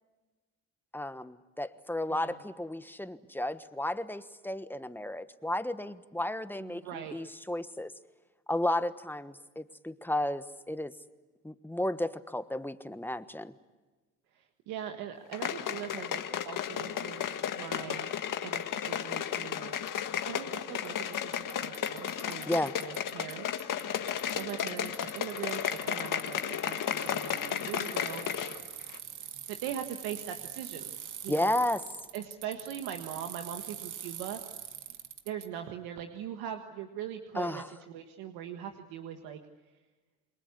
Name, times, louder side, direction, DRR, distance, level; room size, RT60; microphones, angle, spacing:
voice 1, 0.9-7.9 8.5-10.9 11.4-13.5 22.5-22.8 31.3-31.8 37.3-37.7, left 1 dB, 5° left, 12 dB, 1.3 m, -33 dB
voice 2, 6.6-7.2 14.3-17.3 17.5-18.1 18.4-19.7 20.2-22.5 22.8-23.7 24.0-28.2 29.5-30.9 31.2-31.6 32.1-34.4 35.2-39.4, right 9 dB, 85° right, 5 dB, 1.6 m, -41 dB
sound 1, 15.3-28.6 28.9-29.0, left 9 dB, 60° left, 1.7 m, -34 dB
Bicycle, 19.9-20.0 20.9-21.0 21.1-23.3 23.6-35.5, right 9 dB, 55° right, 1.7 m, -44 dB
28.0 x 21.5 x 8.4 m, 1.2 s
supercardioid pair, 70°, 36 cm